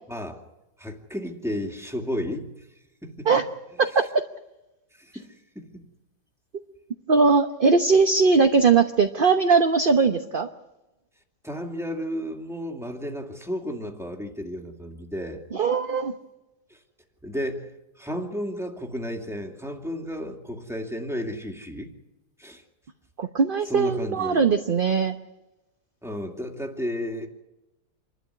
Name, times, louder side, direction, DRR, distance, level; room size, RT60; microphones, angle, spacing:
voice 1, 0.1-0.4 0.8-2.5 3.0-3.3 3.9-4.0 4.9-5.3 5.7-5.8 11.4-15.4 16.7-16.8 17.2-17.7 18.0-21.9 22.4-22.6 23.7-24.4 26.0-27.3, equal, ahead, 2 dB, 2.4 m, -32 dB
voice 2, 7.1-10.5 15.5-16.1 23.2-25.1, right 4 dB, 40° right, 6 dB, 1.0 m, -20 dB
27.5 x 12.5 x 9.7 m, 0.99 s
omnidirectional pair, 1.7 m